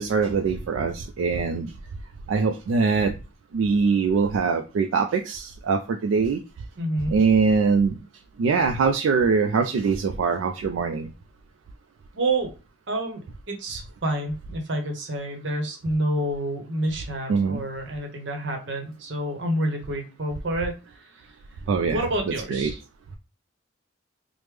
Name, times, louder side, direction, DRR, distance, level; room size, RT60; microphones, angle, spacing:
voice 1, 0.0-1.7 2.3-3.1 3.5-6.4 7.1-7.9 8.4-11.1 17.3-17.6 21.7-22.0 22.5-22.7, right 5 dB, 85° right, 5 dB, 0.3 m, -22 dB
voice 2, 6.8-7.1 12.1-12.5 12.9-20.7 21.0-21.1 21.9-22.8, right 1 dB, 70° right, 3 dB, 0.8 m, -28 dB
3.2 x 2.0 x 3.2 m, 0.31 s
head